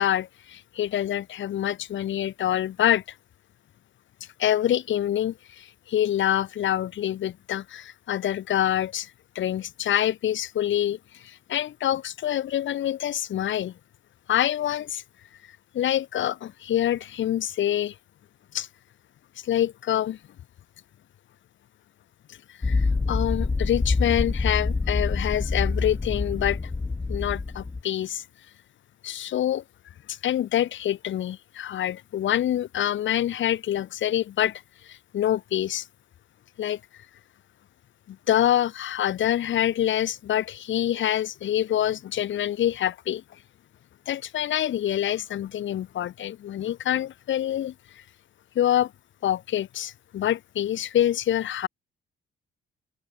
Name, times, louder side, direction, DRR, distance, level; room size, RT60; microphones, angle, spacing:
voice 1, 0.0-3.0 4.4-9.1 9.3-13.7 14.3-15.0 15.7-17.9 18.5-18.7 19.4-20.2 22.6-26.6 27.1-28.2 29.0-29.6 30.1-35.9 36.6-36.8 38.1-43.2 44.1-47.7 48.5-48.9 49.2-51.7, left 11 dB, 75° left, 6.3 m, -26 dB
sound 1, 22.6-27.8, left 3 dB, 15° left, 0.7 m, -26 dB
cardioid pair, 90°, 20 cm